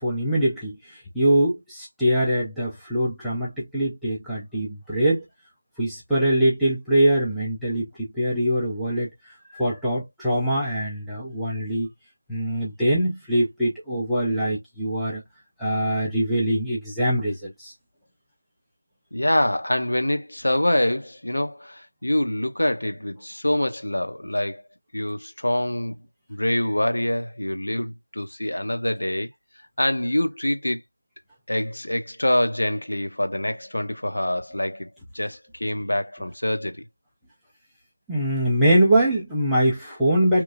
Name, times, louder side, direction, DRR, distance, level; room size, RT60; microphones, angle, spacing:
voice 1, 0.0-5.2 5.8-9.1 9.5-11.9 12.3-15.2 15.6-17.7 38.1-40.4, right 1 dB, ahead, 0.4 m, -23 dB
voice 2, 19.1-24.6 24.9-26.0 26.3-29.3 29.8-30.8 31.5-34.9 35.1-36.8, left 1 dB, 65° left, 0.7 m, -25 dB
3.0 x 2.3 x 2.3 m
figure-of-eight pair, 175°, 0 cm